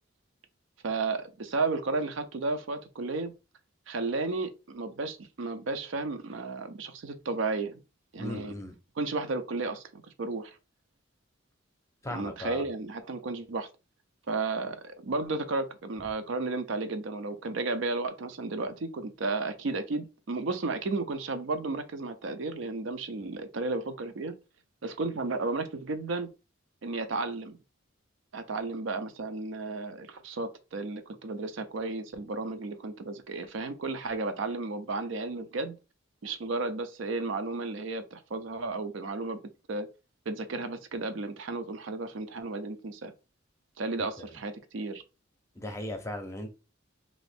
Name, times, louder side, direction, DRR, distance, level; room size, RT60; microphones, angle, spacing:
voice 1, 0.8-3.3 3.9-7.8 8.1-8.6 9.0-10.6 12.1-13.7 14.3-24.3 24.8-26.3 26.8-27.6 28.3-35.7 36.2-39.4 39.7-39.9 40.3-43.1 43.8-45.0, right 3 dB, 70° right, 0.5 m, -33 dB
voice 2, 8.2-8.7 12.0-12.6 44.2-44.4 45.6-46.5, left 1 dB, 15° left, 0.6 m, -37 dB
2.9 x 2.6 x 3.3 m
head